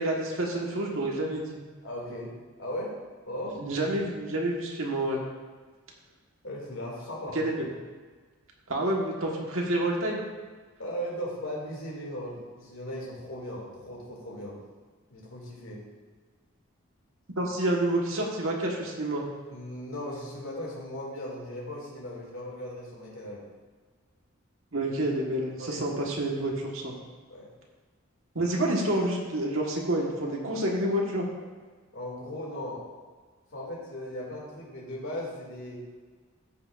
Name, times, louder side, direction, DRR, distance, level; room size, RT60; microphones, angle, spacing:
voice 1, 0.0-1.6 3.5-5.2 7.3-7.7 8.7-10.2 17.4-19.2 24.7-26.9 28.3-31.3, right 1 dB, 70° right, -1 dB, 1.6 m, -28 dB
voice 2, 1.8-2.3 2.6-3.0 3.3-3.6 6.4-7.4 10.8-14.6 15.1-15.8 19.5-23.4 25.6-25.9 27.3-27.5 31.9-32.8 33.5-35.8, equal, 70° left, -4 dB, 2.7 m, -37 dB
14.0 x 6.2 x 2.6 m, 1.4 s
head